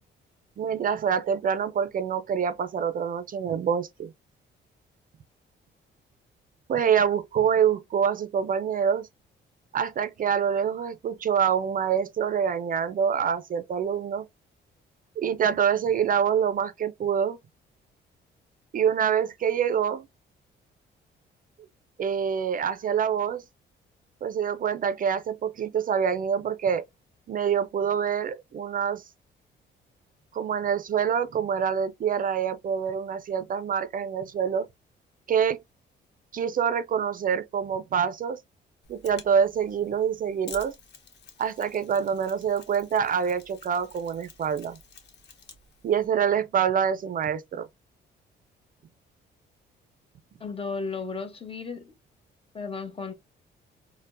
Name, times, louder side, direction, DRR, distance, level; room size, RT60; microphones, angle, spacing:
voice 1, 0.6-4.1 6.7-9.1 9.7-14.3 15.2-17.4 18.7-20.1 22.0-23.4 24.2-26.8 27.3-29.0 30.3-34.7 35.3-35.6 36.3-38.4 38.9-40.7 41.4-44.8 45.8-47.7, right 7 dB, 45° right, 0.4 m, -26 dB
Mechanisms, 38.8-46.1, left 5 dB, 60° left, 1.1 m, -50 dB
voice 2, 50.4-51.9 52.5-53.1, left 4 dB, 30° left, 1.0 m, -34 dB
4.2 x 2.1 x 2.5 m
cardioid pair, 90°, 20 cm